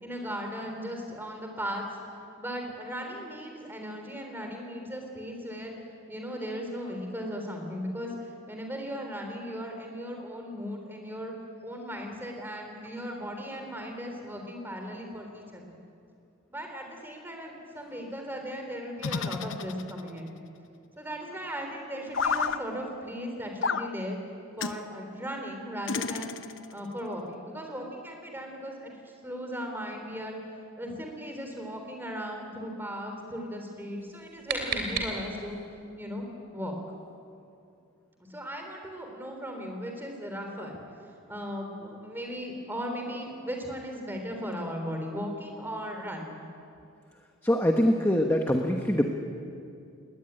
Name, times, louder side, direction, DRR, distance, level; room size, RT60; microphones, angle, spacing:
voice 1, 0.0-2.0 2.4-5.7 6.1-11.3 11.6-15.8 16.5-20.4 21.0-24.2 24.6-26.4 26.7-28.9 29.2-30.4 30.8-35.6 36.0-36.3 36.5-36.8 38.3-40.8 41.3-46.4, equal, 10° right, 3 dB, 3.4 m, -37 dB
sound 1, 19.0-20.2 22.1-22.6 23.6-23.9 24.6-24.8 25.9-26.7, left 5 dB, 60° left, 0.7 m, -30 dB
sound 2, 34.0-35.7, right 4 dB, 50° right, 3.6 m, -34 dB
voice 2, 47.4-49.0, equal, 10° left, 3 dB, 1.1 m, -23 dB
20.5 x 18.0 x 10.0 m, 2.5 s
head